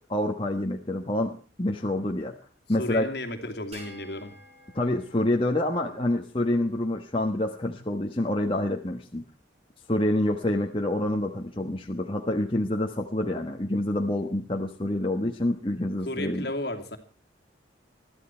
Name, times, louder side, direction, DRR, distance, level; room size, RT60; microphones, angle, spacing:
voice 1, 0.1-2.3 2.7-3.1 4.7-9.2 9.9-16.5, left 1 dB, 30° left, 1 dB, 1.3 m, -27 dB
voice 2, 2.8-4.3 16.0-17.0, left 1 dB, 55° left, 6 dB, 2.6 m, -33 dB
sound 1, 3.7-6.3, right 1 dB, 30° right, 5.6 m, -50 dB
22.0 x 13.5 x 4.5 m, 0.37 s
head